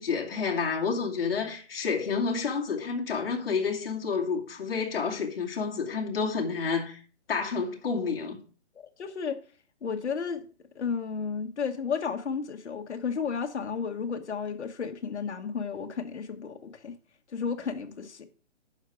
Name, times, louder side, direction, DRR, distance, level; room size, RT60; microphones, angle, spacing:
voice 1, 0.0-7.0 7.3-8.4, left 5 dB, 55° left, 2.5 m, -29 dB
voice 2, 9.0-9.4 9.8-10.4 10.7-16.9 17.3-18.3, left 6 dB, 75° left, 1.5 m, -32 dB
11.5 x 5.9 x 4.9 m
hypercardioid pair, 175°, 34 cm